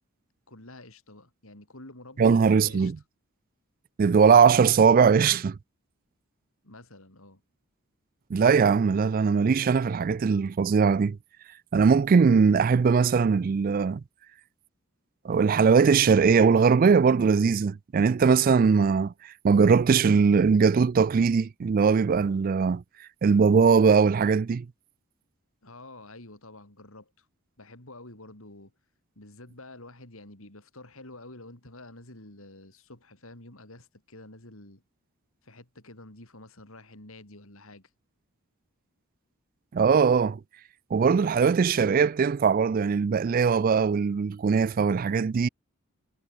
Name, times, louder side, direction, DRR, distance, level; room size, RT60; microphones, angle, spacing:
voice 1, 0.5-2.9 6.6-7.4 25.6-27.3 27.6-28.7 29.2-34.8 35.4-37.9, left 2 dB, 70° left, 4.5 m, -48 dB
voice 2, 2.2-3.0 4.0-5.6 8.3-11.2 11.7-14.0 15.2-19.1 19.4-22.8 23.2-24.7 39.7-40.4 40.9-45.5, right 5 dB, 40° right, 0.3 m, -20 dB
head